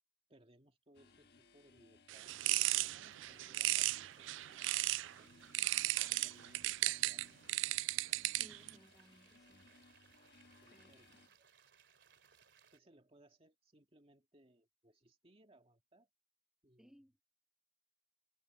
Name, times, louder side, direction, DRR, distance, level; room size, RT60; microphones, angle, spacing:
voice 1, 0.3-5.8 6.2-7.6 10.6-11.5 12.7-16.1 16.6-17.0, right 1 dB, 30° right, 2.1 m, -67 dB
sound 1, 0.9-11.3, left 3 dB, 60° left, 1.4 m, -65 dB
sound 2, 2.1-5.1 5.5-8.7, right 18 dB, 85° right, 0.3 m, -35 dB
sound 3, 3.0-12.8, right 7 dB, 65° right, 3.1 m, -67 dB
voice 2, 8.4-9.7 10.7-11.2 16.8-17.1, equal, 5° right, 1.0 m, -63 dB
head